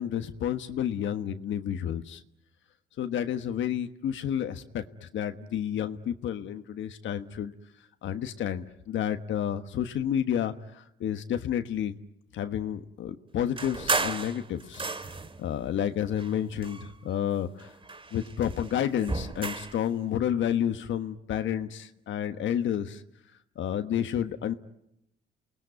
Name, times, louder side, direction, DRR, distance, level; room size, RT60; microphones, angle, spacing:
voice 1, 0.0-2.2 3.0-7.5 8.0-11.9 12.3-14.9 15.4-17.7 18.1-23.0 23.6-24.5, left 9 dB, 75° left, 8 dB, 1.4 m, -30 dB
sound 1, 13.6-15.4 16.1-17.3 17.6-19.8, right 3 dB, 25° right, 2.1 m, -33 dB
29.0 x 20.5 x 9.6 m, 0.82 s
cardioid pair, 90°, 20 cm